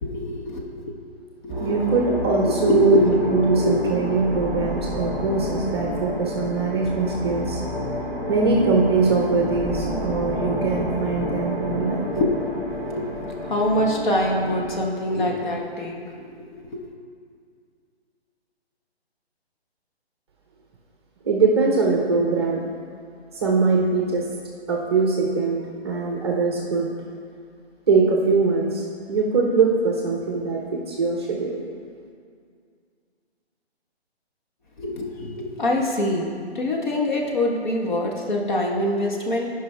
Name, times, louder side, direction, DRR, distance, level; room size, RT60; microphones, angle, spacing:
voice 1, 0.0-1.0 1.4-3.2 3.6-3.9 12.1-16.9 34.8-36.3 36.5-39.5, left 1 dB, 45° left, -1 dB, 1.4 m, -25 dB
sound 1, 1.5-14.8, left 1 dB, 5° right, 2.1 m, -29 dB
voice 2, 1.6-3.0 3.3-7.6 8.3-12.1 21.2-22.6 23.4-24.3 24.7-26.9 27.9-31.6, right 4 dB, 25° right, 0 dB, 0.7 m, -22 dB
14.5 x 5.2 x 3.4 m, 2.2 s
hypercardioid pair, 155°, 33 cm